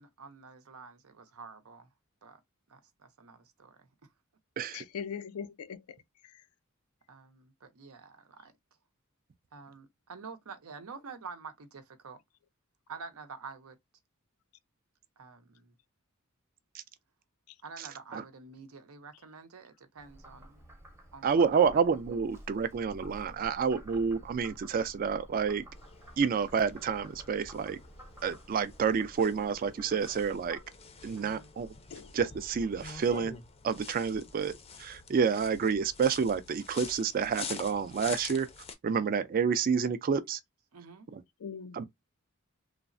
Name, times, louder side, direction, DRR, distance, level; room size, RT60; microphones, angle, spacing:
voice 1, 0.0-1.9 2.2-2.4 2.7-3.9 7.1-8.5 9.5-12.2 12.9-13.8 15.2-15.7 17.6-20.6 21.1-21.6 31.2-31.5 40.7-41.1, right 5 dB, 85° right, 0.6 m, -48 dB
voice 2, 4.7-6.0 6.2-6.4 31.9-32.1 41.4-41.8, left 7 dB, 90° left, 0.4 m, -41 dB
Frog, 20.0-30.6, right 1 dB, 10° right, 0.7 m, -51 dB
voice 3, 21.2-25.6 26.2-27.8 28.2-30.6 31.0-31.7 32.1-33.4 33.6-34.5 34.8-38.5 38.8-40.4 41.1-41.2 41.7-41.9, right 6 dB, 40° right, 0.3 m, -29 dB
sound 1, 25.7-38.7, left 5 dB, 25° left, 0.4 m, -47 dB
3.2 x 2.0 x 2.5 m
head